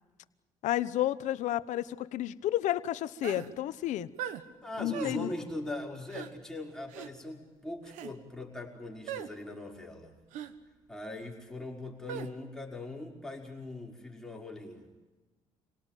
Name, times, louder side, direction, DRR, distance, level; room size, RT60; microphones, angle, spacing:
voice 1, 0.6-4.1 4.8-5.3, left 13 dB, 75° left, 14 dB, 1.0 m, -31 dB
sound 1, 3.2-3.5 4.2-4.4 4.9-5.2 6.1-6.3 6.9-7.1 7.8-8.1 9.1-9.3 10.3-10.5 12.1-12.3, right 10 dB, 90° right, 1.4 m, -39 dB
voice 2, 4.6-10.2 10.9-14.9, left 2 dB, 5° left, -1 dB, 5.4 m, -40 dB
27.5 x 18.0 x 9.2 m, 1.2 s
cardioid pair, 85°, 13 cm